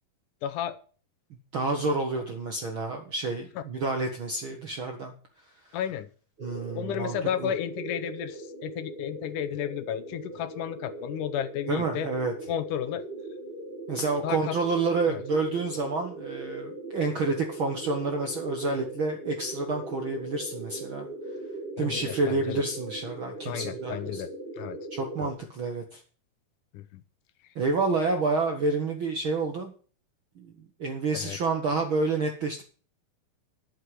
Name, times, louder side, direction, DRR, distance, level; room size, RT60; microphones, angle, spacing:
voice 1, 0.4-0.8 5.7-6.1 6.7-12.1 12.5-13.1 14.2-14.6 15.1-15.2 21.8-22.6 23.5-24.3 24.6-24.8 25.2-25.3 26.7-27.0 31.1-31.4, left 10 dB, 75° left, 11 dB, 2.1 m, -33 dB
voice 2, 1.5-5.1 6.4-7.5 11.7-12.3 13.9-21.1 21.8-24.2 24.9-26.0 27.5-29.7 30.4-30.5 30.8-32.6, right 3 dB, 65° right, 4 dB, 1.3 m, -29 dB
sound 1, 6.4-25.4, right 2 dB, 25° right, 1.3 m, -39 dB
11.0 x 6.6 x 7.5 m, 0.41 s
omnidirectional pair, 4.0 m